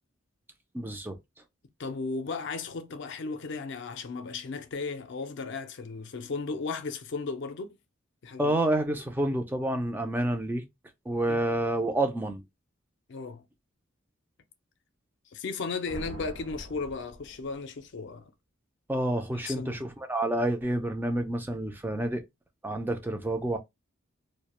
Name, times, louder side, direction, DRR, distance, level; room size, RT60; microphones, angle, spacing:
voice 1, 0.7-1.2 8.4-10.7 11.1-12.4 18.9-22.2 22.6-23.6, right 1 dB, 10° right, 0.3 m, -28 dB
voice 2, 1.8-7.8 8.2-8.6 11.3-11.4 13.1-13.4 15.3-18.3 19.4-19.8, left 4 dB, 60° left, 0.5 m, -35 dB
sound 1, 15.8-17.8, equal, 85° right, 0.9 m, -44 dB
2.3 x 2.1 x 2.9 m
head